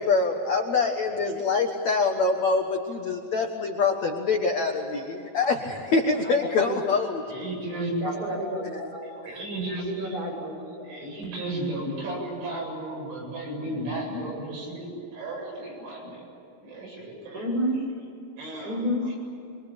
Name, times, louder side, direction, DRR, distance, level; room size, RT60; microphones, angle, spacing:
voice 1, 0.0-7.2 9.2-9.4, left 4 dB, 75° left, 2 dB, 1.6 m, -25 dB
voice 2, 5.9-6.8 8.0-9.4 9.8-11.0 17.3-17.8 18.6-19.0, equal, 15° right, -1 dB, 8.2 m, -31 dB
voice 3, 7.3-8.1 9.2-10.1 10.9-16.2 16.6-17.5 18.4-18.8, right 1 dB, 75° right, -1 dB, 10.0 m, -34 dB
26.0 x 24.5 x 8.8 m, 2.7 s
omnidirectional pair, 5.7 m